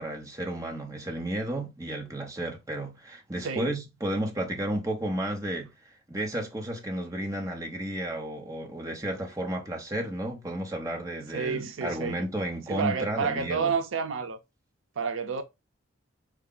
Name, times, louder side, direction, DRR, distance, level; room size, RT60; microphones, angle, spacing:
voice 1, 0.0-5.7 6.1-13.8, right 1 dB, 15° right, 0.8 m, -32 dB
voice 2, 3.4-3.7 11.3-12.1 12.7-14.4 15.0-15.4, right 5 dB, 80° right, 0.5 m, -29 dB
4.7 x 2.2 x 3.8 m
head